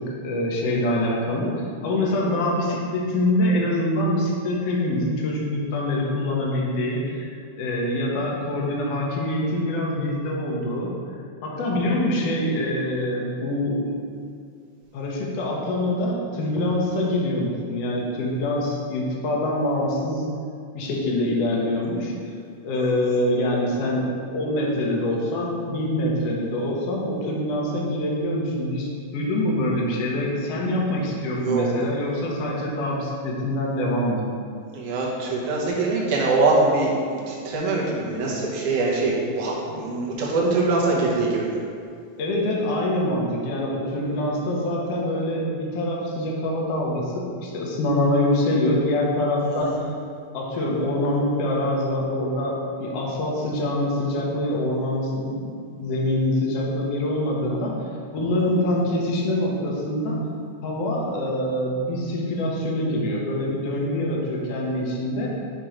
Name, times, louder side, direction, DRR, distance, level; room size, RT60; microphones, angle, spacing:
voice 1, 0.0-1.5 1.8-10.9 11.4-14.0 14.9-20.2 20.7-22.1 22.6-34.3 42.2-49.9 50.3-57.8 58.1-60.2 60.6-65.3, left 1 dB, 70° left, -3 dB, 1.5 m, -25 dB
voice 2, 34.7-41.6 49.5-49.7, right 3 dB, 70° right, -4 dB, 1.5 m, -23 dB
8.0 x 3.0 x 5.0 m, 2.3 s
omnidirectional pair, 4.0 m